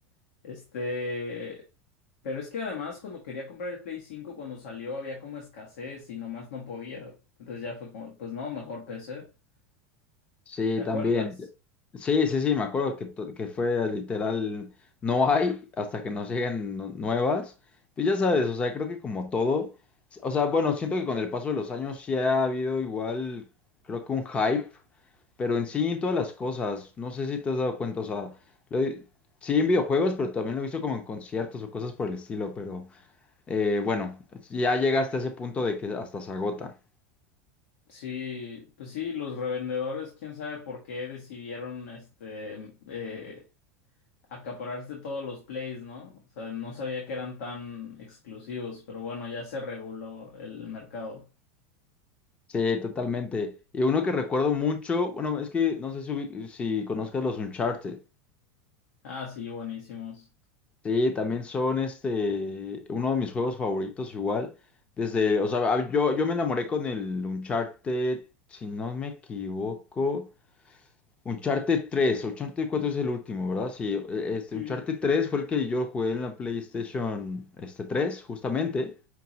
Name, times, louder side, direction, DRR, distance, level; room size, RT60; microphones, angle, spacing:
voice 1, 0.4-1.7 2.2-9.3 10.8-11.2 37.9-43.4 44.3-51.2 59.0-60.3 74.5-74.8, left 4 dB, 80° left, 1.6 m, -36 dB
voice 2, 10.5-11.3 11.9-14.7 15.0-17.5 18.0-19.7 20.1-23.4 23.9-24.7 25.4-28.3 28.7-29.0 29.4-32.9 33.5-34.2 34.5-36.7 52.5-58.0 60.8-64.5 65.0-68.2 68.5-70.3 71.3-78.9, left 4 dB, 15° left, 0.6 m, -28 dB
5.9 x 3.2 x 2.8 m
supercardioid pair, 160°, 7 cm